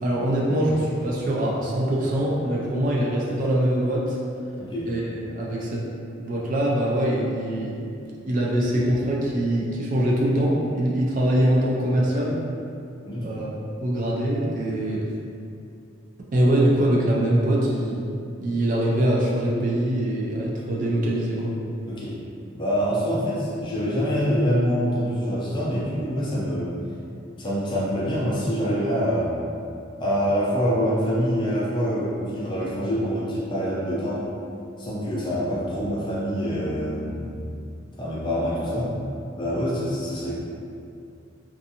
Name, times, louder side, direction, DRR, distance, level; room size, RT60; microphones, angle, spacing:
voice 1, 0.0-4.2 4.9-5.9 6.2-7.9 8.2-12.4 13.2-13.5 13.8-15.1 16.3-18.1 18.4-21.5, right 1 dB, 40° right, -3 dB, 0.3 m, -23 dB
voice 2, 4.6-4.9 13.0-13.3 21.8-22.2 22.5-26.7 27.4-29.3 30.0-34.3 34.8-37.4 38.0-38.9 39.4-40.3, equal, 25° left, -8 dB, 0.5 m, -25 dB
2.5 x 2.3 x 2.7 m, 2.5 s
head